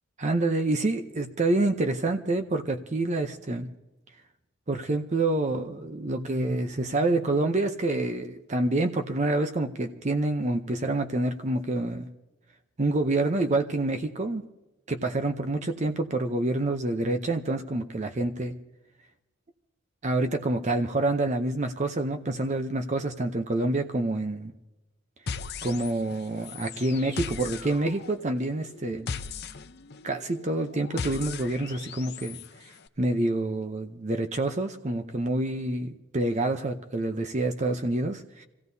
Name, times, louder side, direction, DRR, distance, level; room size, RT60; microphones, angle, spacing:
voice 1, 0.2-3.7 4.7-12.1 12.8-14.4 14.9-18.6 20.0-24.5 25.6-29.1 30.0-32.4 32.6-38.4, right 2 dB, 35° right, 7 dB, 0.6 m, -27 dB
sound 1, 25.3-32.5, left 5 dB, 50° left, 0.6 m, -38 dB
26.5 x 16.0 x 2.7 m, 1.0 s
head